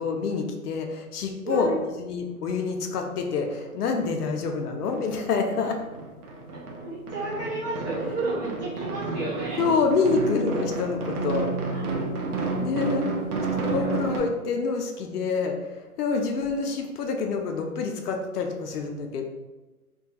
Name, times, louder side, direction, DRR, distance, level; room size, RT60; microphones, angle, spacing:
voice 1, 0.0-1.7 2.0-5.8 9.6-11.5 12.6-13.2 13.5-15.7 16.0-19.2, left 4 dB, 75° left, 4 dB, 0.6 m, -27 dB
voice 2, 1.4-1.8 6.8-9.6 11.7-11.8 13.7-14.2 16.1-16.2, right 2 dB, 10° right, -14 dB, 0.5 m, -32 dB
sound 1, 3.0-3.1 3.4-4.6 4.9-14.2, right 3 dB, 70° right, 0.7 m, -31 dB
2.2 x 2.2 x 2.8 m, 1.1 s
hypercardioid pair, 140°, 46 cm